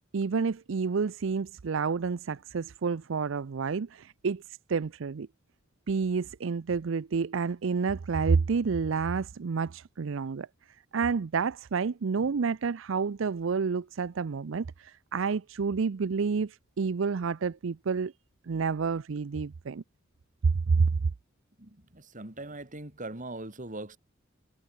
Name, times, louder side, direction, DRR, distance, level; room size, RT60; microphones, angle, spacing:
voice 1, 0.0-5.3 5.9-10.5 10.9-18.1 18.5-19.8 20.4-20.9, right 5 dB, 65° right, 0.5 m, -29 dB
voice 2, 21.6-24.0, right 2 dB, 40° right, 3.0 m, -41 dB
head